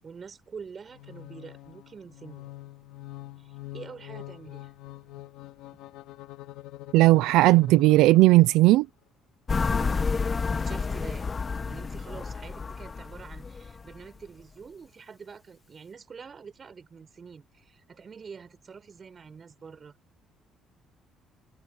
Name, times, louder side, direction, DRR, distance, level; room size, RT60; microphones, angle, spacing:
voice 1, 0.0-2.5 3.4-4.7 9.7-10.1 10.5-11.4 11.7-19.9, right 6 dB, 40° right, 7.7 m, -46 dB
sound 1, 0.9-8.9, left 17 dB, 85° left, 3.5 m, -45 dB
voice 2, 6.9-8.9, right 18 dB, 85° right, 0.6 m, -17 dB
sound 2, 9.5-14.0, left 4 dB, 35° left, 1.4 m, -30 dB
supercardioid pair, 80°, 0 cm